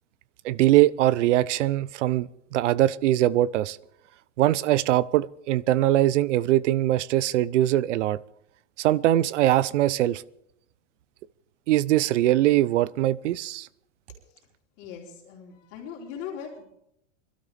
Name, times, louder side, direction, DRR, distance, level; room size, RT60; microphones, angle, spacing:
voice 1, 0.4-3.8 4.4-8.2 8.8-10.2 11.7-13.7, right 14 dB, 80° right, 0.7 m, -22 dB
voice 2, 14.8-16.6, left 7 dB, 40° left, 4.1 m, -39 dB
25.0 x 12.5 x 3.5 m
supercardioid pair, 160°, 36 cm